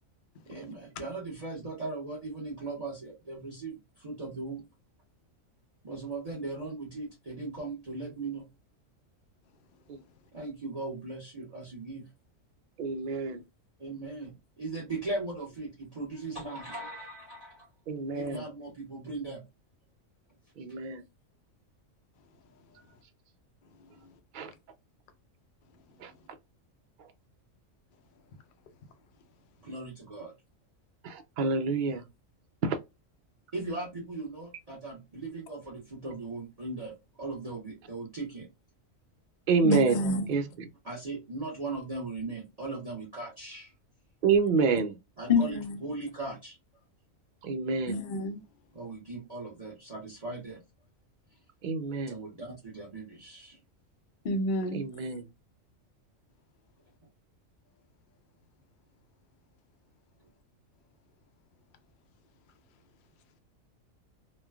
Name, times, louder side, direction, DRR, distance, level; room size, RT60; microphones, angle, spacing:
voice 1, 0.5-4.6 5.8-8.4 10.3-12.1 13.8-17.7 18.1-19.4 29.6-30.3 33.5-38.5 40.8-43.7 45.2-46.6 48.7-50.6 52.0-53.6, right 3 dB, 30° right, 0.9 m, -38 dB
voice 2, 12.8-13.4 17.9-18.4 20.6-21.0 24.3-24.5 26.0-26.1 31.0-32.0 32.6-32.8 39.5-40.0 40.3-40.7 44.2-45.0 47.4-48.0 51.6-52.2 54.7-55.2, right 5 dB, 75° right, 0.4 m, -28 dB
voice 3, 39.6-40.3 45.3-45.8 47.9-48.4 54.2-54.8, left 3 dB, 55° left, 0.6 m, -27 dB
3.1 x 2.2 x 2.2 m
omnidirectional pair, 1.4 m